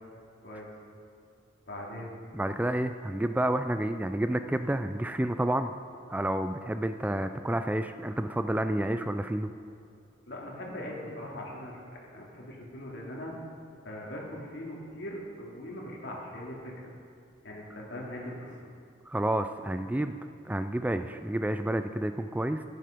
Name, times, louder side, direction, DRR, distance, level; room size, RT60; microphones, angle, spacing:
voice 1, 1.7-2.2 10.2-13.3 13.8-16.9 17.4-18.5, left 1 dB, 65° left, -3 dB, 2.6 m, -40 dB
voice 2, 2.3-5.7 6.1-9.5 19.1-20.1 20.5-22.6, right 1 dB, 10° right, 9 dB, 0.3 m, -29 dB
11.5 x 11.0 x 5.1 m, 2.4 s
head